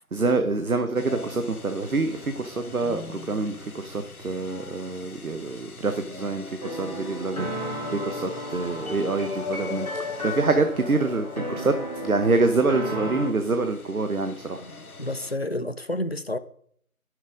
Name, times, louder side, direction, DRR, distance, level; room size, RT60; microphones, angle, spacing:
voice 1, 0.1-9.9 10.2-14.6, right 3 dB, 75° right, 1.0 m, -26 dB
sound 1, 0.9-15.3, left 3 dB, 80° left, 1.1 m, -44 dB
sound 2, 6.6-13.3, left 1 dB, 25° left, 1.9 m, -33 dB
voice 2, 15.0-16.4, left 1 dB, 50° left, 0.4 m, -29 dB
8.9 x 6.4 x 4.9 m
figure-of-eight pair, 175°, 43 cm